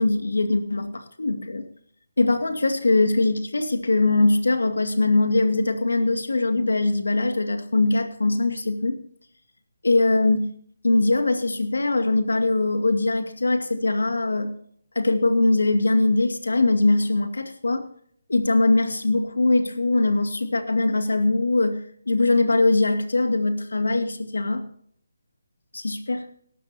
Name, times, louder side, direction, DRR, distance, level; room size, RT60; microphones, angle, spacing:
voice 1, 0.0-1.7 2.2-9.0 9.8-10.5 10.8-14.5 15.0-17.9 18.3-21.8 22.1-24.6 25.7-26.2, left 2 dB, 85° left, 7 dB, 2.3 m, -21 dB
18.0 x 13.5 x 2.9 m, 0.62 s
figure-of-eight pair, 160°, 0 cm